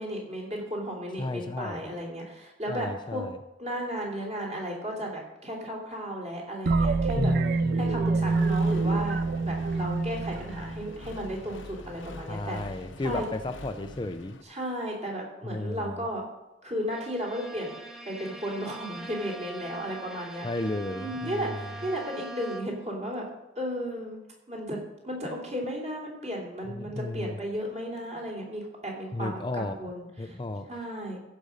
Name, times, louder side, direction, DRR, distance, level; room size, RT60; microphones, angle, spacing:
voice 1, 0.0-3.2 3.6-7.3 7.7-12.6 13.0-13.2 14.4-16.3 16.6-17.8 18.0-20.4 20.9-23.2 23.5-24.2 24.5-24.8 25.0-30.4 30.7-31.2, equal, 35° right, -1 dB, 3.1 m, -34 dB
voice 2, 1.2-1.8 2.7-3.4 7.1-8.3 12.3-14.4 15.4-16.0 20.4-21.5 26.7-27.4 29.1-29.8 30.2-30.7, left 2 dB, 25° left, 8 dB, 0.4 m, -33 dB
sound 1, 6.7-11.3, right 3 dB, 50° right, 0.4 m, -26 dB
Accelerating revving vroom, 8.2-14.4, left 2 dB, 80° left, 0.8 m, -44 dB
Bowed string instrument, 16.9-23.0, right 2 dB, 5° right, 0.9 m, -43 dB
15.0 x 5.2 x 6.5 m, 0.97 s
head